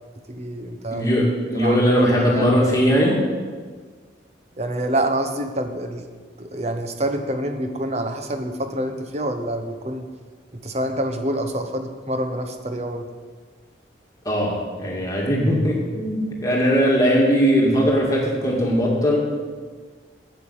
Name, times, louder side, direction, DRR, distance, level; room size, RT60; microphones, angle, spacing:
voice 1, 0.3-1.1 1.5-2.5 4.6-6.1 6.4-10.1 10.5-13.1, right 1 dB, 35° right, 7 dB, 1.0 m, -27 dB
voice 2, 0.9-3.2 14.2-19.2, equal, 20° left, -3 dB, 2.4 m, -19 dB
9.1 x 8.0 x 8.8 m, 1.5 s
head